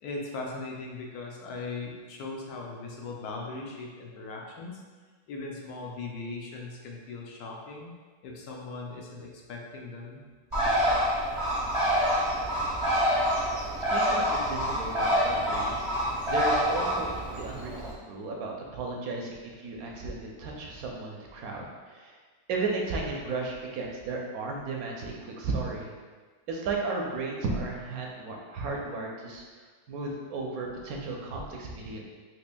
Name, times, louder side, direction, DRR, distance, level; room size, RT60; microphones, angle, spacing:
voice 1, 0.0-4.8 5.3-7.9 8.2-10.2, left 3 dB, 80° left, -1 dB, 1.1 m, -39 dB
Bird, 10.5-17.9, equal, 30° right, 0.6 m, -27 dB
voice 2, 13.7-15.9 16.2-22.2 22.5-25.9 26.5-29.4 29.9-32.0, right 3 dB, 75° right, -1 dB, 1.0 m, -34 dB
4.2 x 3.0 x 2.2 m, 1.4 s
omnidirectional pair, 1.6 m